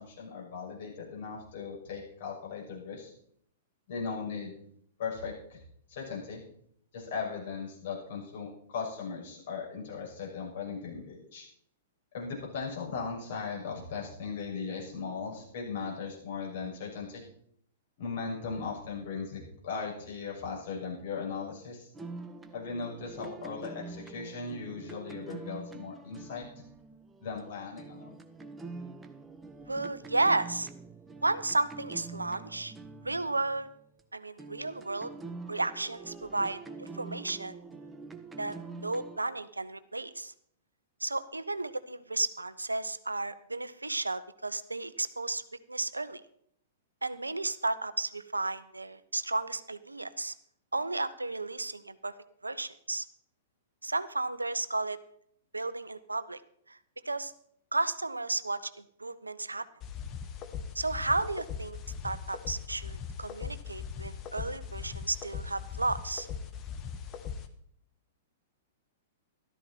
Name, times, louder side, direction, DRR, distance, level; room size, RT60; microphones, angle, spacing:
voice 1, 0.0-3.1 3.9-4.6 5.0-5.6 5.9-6.4 6.9-11.4 12.1-17.2 18.0-21.9 22.5-26.4 27.2-28.2, left 5 dB, 55° left, -3 dB, 6.5 m, -38 dB
sound 1, 21.9-34.0 34.4-39.2, right 3 dB, 10° right, 1.0 m, -45 dB
voice 2, 29.7-30.7 31.2-32.7 33.0-33.7 34.1-35.1 35.5-37.6 38.4-40.3 41.0-45.4 45.7-46.2 47.0-50.3 50.7-52.1 52.4-53.0 53.8-55.0 55.5-56.4 56.7-56.8 57.0-57.3 57.7-58.7 59.0-59.7 60.7-61.8 62.0-66.3, right 2 dB, 85° right, 14 dB, 0.7 m, -33 dB
sound 2, 59.8-67.5, left 7 dB, 30° left, 1.3 m, -40 dB
13.5 x 13.0 x 4.4 m, 0.66 s
figure-of-eight pair, 105°, 0 cm